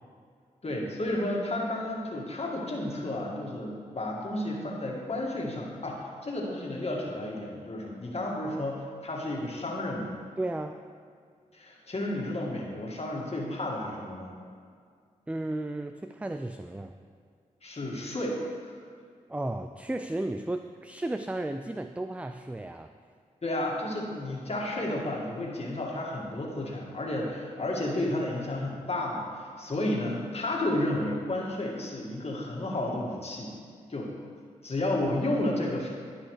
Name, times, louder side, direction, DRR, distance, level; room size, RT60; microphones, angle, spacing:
voice 1, 0.6-10.1 11.5-14.3 17.6-18.7 23.4-33.6 33.9-34.2 34.6-35.9, left 1 dB, 45° left, -2 dB, 1.9 m, -32 dB
voice 2, 10.4-10.8 15.3-17.0 19.3-22.9, right 1 dB, 10° right, 7 dB, 0.4 m, -34 dB
13.5 x 5.4 x 3.2 m, 2.1 s
supercardioid pair, 40°, 15 cm